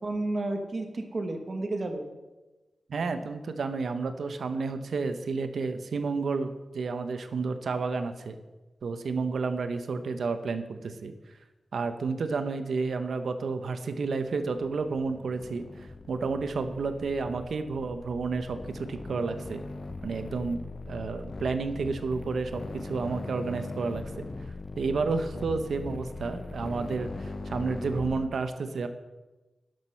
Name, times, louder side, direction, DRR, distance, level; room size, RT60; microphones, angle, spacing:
voice 1, 0.0-2.1, right 2 dB, 40° right, 5 dB, 1.2 m, -31 dB
voice 2, 2.9-8.4 8.8-11.1 11.7-15.7 16.1-19.6 20.0-24.3 24.8-28.9, right 4 dB, 75° right, 9 dB, 0.8 m, -31 dB
sound 1, 14.5-28.3, left 3 dB, 40° left, 0.5 m, -40 dB
11.5 x 6.3 x 5.6 m, 1.1 s
wide cardioid pair, 120°, 0 cm